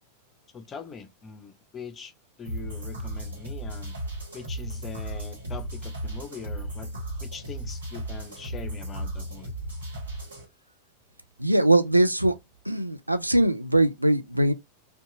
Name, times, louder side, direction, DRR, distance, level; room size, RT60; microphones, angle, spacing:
voice 1, 0.5-2.1 2.4-4.0 4.3-6.9 7.2-9.5, left 5 dB, 25° left, 0.4 m, -42 dB
sound 1, 2.4-10.4, right 1 dB, 70° right, 1.3 m, -35 dB
voice 2, 11.4-12.3 12.7-14.5, right 1 dB, 85° right, 0.3 m, -21 dB
2.6 x 2.2 x 2.6 m
figure-of-eight pair, 90°, 0 cm